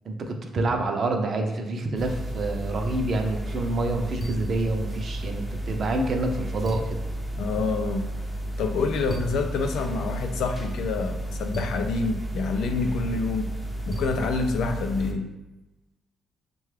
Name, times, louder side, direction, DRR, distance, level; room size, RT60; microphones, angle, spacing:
voice 1, 0.1-7.0, right 2 dB, 50° right, 4 dB, 0.6 m, -27 dB
sound 1, 2.0-15.1, right 1 dB, ahead, 0.6 m, -32 dB
voice 2, 7.4-8.1 8.6-13.5 13.9-15.3, left 4 dB, 75° left, 5 dB, 0.4 m, -27 dB
5.6 x 2.3 x 3.2 m, 1.0 s
cardioid pair, 90°, 0 cm